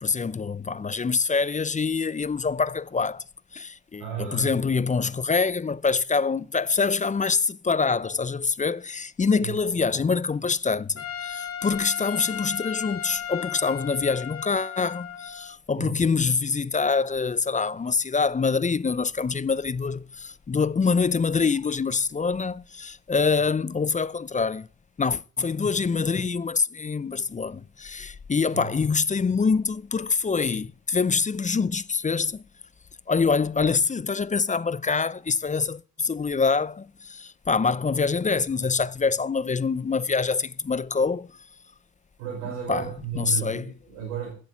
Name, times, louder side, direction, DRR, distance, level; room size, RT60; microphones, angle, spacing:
voice 1, 0.0-3.2 3.5-24.7 25.0-32.4 33.1-41.3 42.7-42.9 43.2-43.6, left 5 dB, 20° left, 0.6 m, -25 dB
voice 2, 4.0-4.5 9.4-9.5 15.7-15.9 28.5-28.6 42.2-44.4, right 9 dB, 90° right, 6.5 m, -33 dB
Trumpet, 11.0-15.6, left 9 dB, 40° left, 2.1 m, -35 dB
11.5 x 7.8 x 7.1 m
supercardioid pair, 65°, 36 cm